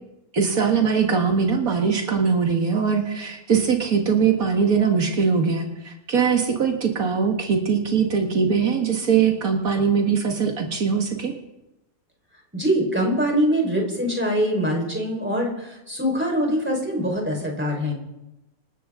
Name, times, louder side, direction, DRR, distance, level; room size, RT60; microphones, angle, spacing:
voice 1, 0.3-11.3, right 6 dB, 85° right, 3 dB, 2.2 m, -21 dB
voice 2, 12.5-17.9, equal, 10° right, 0 dB, 4.4 m, -23 dB
26.5 x 12.5 x 3.7 m, 0.96 s
omnidirectional pair, 1.4 m